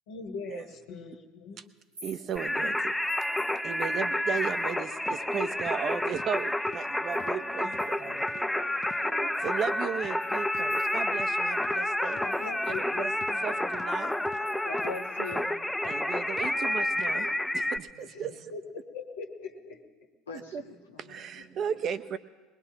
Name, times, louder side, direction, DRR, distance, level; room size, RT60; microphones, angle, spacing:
voice 1, 0.1-1.6 3.9-4.0 7.6-8.3 9.0-9.1 12.2-12.9 13.3-13.4 18.0-18.3 18.5-18.7 18.9-19.7 21.4-21.8, left 4 dB, 70° left, 0 dB, 1.6 m, -42 dB
sound 1, 1.8-4.8 5.1-8.3 8.7-8.8 9.3-11.3 11.5-11.6 12.0-15.4, right 1 dB, 90° right, 3.9 m, -56 dB
voice 2, 2.0-2.9 3.6-8.7 9.0-12.2 12.9-13.1 13.4-14.1 15.9-17.3 17.5-18.3 20.5-20.6 21.1-22.2, right 7 dB, 45° right, 11 dB, 0.8 m, -35 dB
Singing, 2.4-17.8, left 1 dB, 5° left, 0.7 m, -30 dB
sound 2, 5.0-5.2 5.6-5.7 6.1-6.3 6.7-6.8 7.2-7.4 7.7-7.9 8.3-8.4 8.8-9.0 9.4-9.6 10.0-10.1 10.5-10.7 11.1-11.3 11.6-11.8 12.1-12.3 12.7-12.9 13.2-13.4 13.7-13.9 14.2-14.4 14.8-15.0 15.3-15.5 15.8-16.0 16.4-16.6 16.9-17.1, left 7 dB, 40° left, 0.8 m, -47 dB
voice 3, 14.6-15.5 17.9-18.4 20.3-21.2, left 4 dB, 85° left, 2 dB, 1.4 m, -41 dB
21.5 x 20.5 x 2.9 m, 1.3 s
hypercardioid pair, 70°, 0 cm